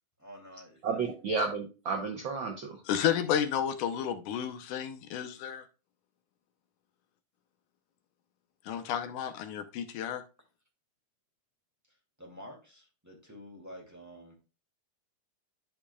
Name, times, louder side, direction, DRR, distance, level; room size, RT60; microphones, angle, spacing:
voice 1, 0.2-1.0 12.2-14.4, equal, 5° right, -1 dB, 2.2 m, -49 dB
voice 2, 0.8-2.8, right 4 dB, 60° right, 2 dB, 1.3 m, -32 dB
voice 3, 2.9-5.7 8.6-10.2, left 9 dB, 85° left, 8 dB, 2.4 m, -31 dB
11.5 x 5.2 x 2.3 m, 0.31 s
omnidirectional pair, 3.4 m